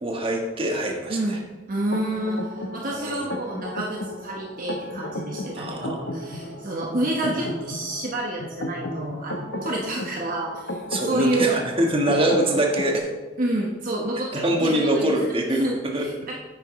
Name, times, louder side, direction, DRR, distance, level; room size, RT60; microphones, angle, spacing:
voice 1, 0.0-1.4 2.9-3.2 5.5-6.0 10.9-13.1 14.3-15.7 15.9-16.3, right 1 dB, 30° right, 0 dB, 1.5 m, -24 dB
voice 2, 1.1-2.5 2.7-11.6 13.4-15.8 16.3-16.4, right 1 dB, 50° right, -2 dB, 1.1 m, -28 dB
sound 1, 1.9-13.0, left 1 dB, 70° left, 1.1 m, -34 dB
11.0 x 8.8 x 3.2 m, 1.3 s
head